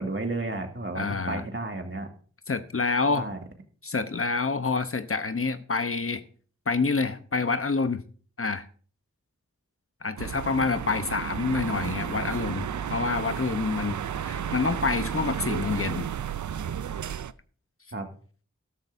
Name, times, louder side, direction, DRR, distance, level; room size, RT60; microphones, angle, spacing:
voice 1, 0.0-2.1 3.1-3.4 17.9-18.1, right 2 dB, 45° right, 2.1 m, -32 dB
voice 2, 0.9-1.4 2.5-3.3 3.8-6.2 6.7-8.0 8.4-8.6 10.0-16.1, left 4 dB, 50° left, 0.9 m, -27 dB
sound 1, 10.2-17.3, right 8 dB, 85° right, 0.5 m, -32 dB
13.5 x 12.0 x 2.7 m
cardioid pair, 45°, 29 cm